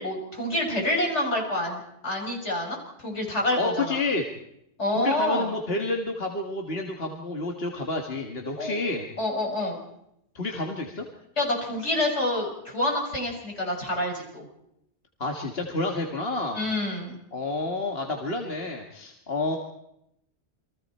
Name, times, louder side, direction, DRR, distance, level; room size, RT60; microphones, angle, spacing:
voice 1, 0.0-4.0 4.8-5.5 8.6-8.8 9.2-9.8 11.4-14.5 16.5-17.2, left 1 dB, 75° left, 0 dB, 6.5 m, -27 dB
voice 2, 3.6-4.2 4.9-9.1 10.3-11.1 15.2-16.6 17.3-19.6, left 2 dB, 60° left, 2 dB, 2.1 m, -29 dB
29.0 x 23.5 x 4.4 m, 0.79 s
omnidirectional pair, 1.2 m